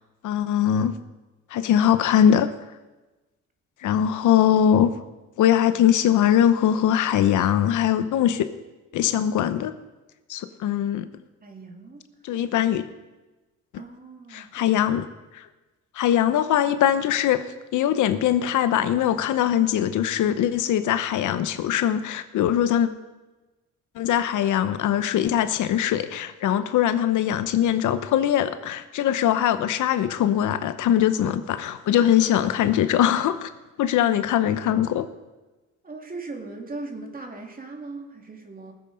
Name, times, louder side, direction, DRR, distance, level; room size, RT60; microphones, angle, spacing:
voice 1, 0.2-1.0 1.5-2.5 3.8-4.9 5.4-8.4 8.9-9.7 10.3-11.1 12.2-12.8 14.3-15.1 15.3-15.4 16.0-17.5 17.7-22.9 24.0-33.5 33.8-35.1, left 10 dB, 80° left, 11 dB, 0.9 m, -21 dB
voice 2, 11.4-12.0 13.8-14.8 35.8-38.7, right 3 dB, 30° right, 2 dB, 2.5 m, -39 dB
19.5 x 7.9 x 5.1 m, 1.1 s
cardioid pair, 90°, 30 cm